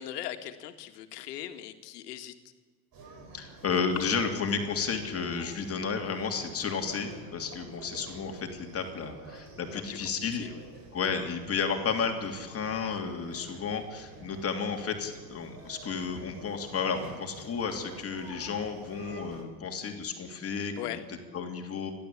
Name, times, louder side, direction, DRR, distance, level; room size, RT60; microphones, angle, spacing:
voice 1, 0.0-2.3 9.7-10.0 10.4-10.6 20.8-21.0, left 12 dB, 85° left, 7 dB, 2.0 m, -39 dB
sound 1, 2.9-19.4, right 3 dB, 45° right, 5.9 m, -48 dB
voice 2, 3.3-10.5 10.9-21.9, left 5 dB, 30° left, 4 dB, 3.1 m, -32 dB
29.5 x 12.5 x 8.6 m, 1.5 s
supercardioid pair, 115°, 46 cm